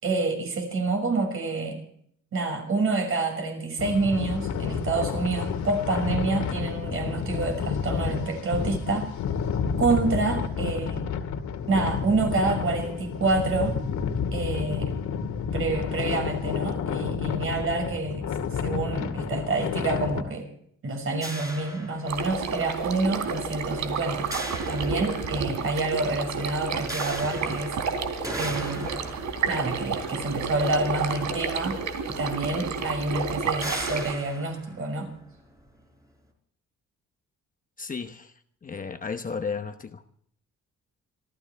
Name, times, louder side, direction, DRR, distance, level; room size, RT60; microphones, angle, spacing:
voice 1, 0.0-1.8 2.3-9.1 9.8-11.0 11.7-13.8 14.3-14.9 15.5-18.3 18.6-20.5 20.8-24.3 24.7-27.7 28.3-28.9 29.5-31.8 32.1-35.1, right 3 dB, 45° right, 6.0 m, -28 dB
sound 1, 3.8-20.2, left 6 dB, 75° left, 2.3 m, -30 dB
sound 2, 21.2-22.6 24.3-25.6 26.9-31.3 32.3-32.4 32.7-32.9 33.6-35.6, right 1 dB, 10° right, 4.6 m, -38 dB
sound 3, 22.1-34.1, right 5 dB, 75° right, 3.3 m, -31 dB
voice 2, 37.8-38.3 38.6-40.0, left 5 dB, 30° left, 1.0 m, -33 dB
27.5 x 14.5 x 3.4 m
cardioid pair, 160°, 29 cm